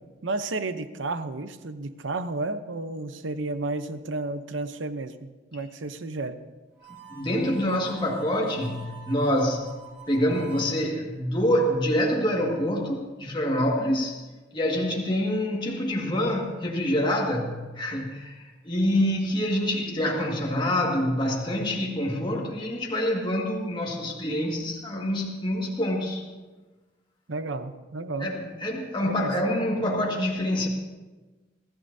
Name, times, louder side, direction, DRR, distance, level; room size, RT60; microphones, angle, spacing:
voice 1, 0.2-6.4 27.3-28.3 29.0-29.5, right 2 dB, 80° right, 10 dB, 0.8 m, -32 dB
Harmonica, 6.7-10.8, right 6 dB, 10° right, 5.9 m, -46 dB
voice 2, 7.1-9.7 10.1-14.2 14.5-26.2 28.2-30.7, equal, 25° left, -2 dB, 1.9 m, -26 dB
25.0 x 14.5 x 2.8 m, 1.3 s
head